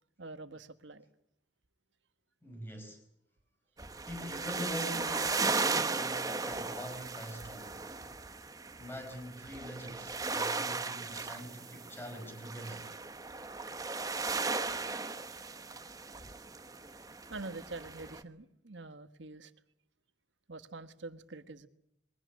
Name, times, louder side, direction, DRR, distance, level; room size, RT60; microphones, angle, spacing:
voice 1, 0.2-1.0 17.3-19.5 20.5-21.7, right 3 dB, 80° right, 1.4 m, -45 dB
voice 2, 2.4-3.0 4.0-7.9 8.8-13.0, equal, 10° left, 5.1 m, -44 dB
sound 1, 3.8-18.2, right 4 dB, 20° right, 1.0 m, -36 dB
22.5 x 17.5 x 9.4 m
head